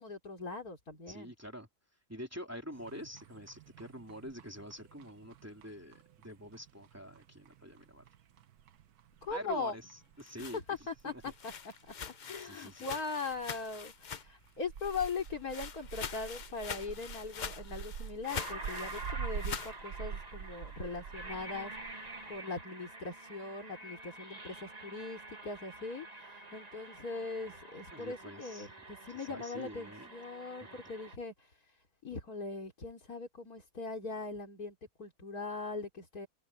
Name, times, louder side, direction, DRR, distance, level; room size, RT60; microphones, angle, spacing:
voice 1, 0.0-1.3 9.2-9.7 10.4-11.5 11.8-21.7 22.3-26.1 26.5-31.3 32.0-36.3, left 4 dB, 80° left, 4.4 m, -40 dB
voice 2, 1.1-1.7 2.1-6.0 6.2-8.0 9.3-9.9 10.2-10.6 11.0-11.3 12.4-12.9 27.9-28.7 29.1-30.1 30.6-30.8, equal, 10° right, 3.2 m, -46 dB
sound 1, 2.7-22.4, right 7 dB, 80° right, 1.5 m, -48 dB
sound 2, 10.0-14.5 14.8-19.8, left 7 dB, 45° left, 0.6 m, -44 dB
sound 3, 17.6-17.7 18.2-31.2, right 2 dB, 25° right, 2.0 m, -47 dB
omnidirectional pair, 1.6 m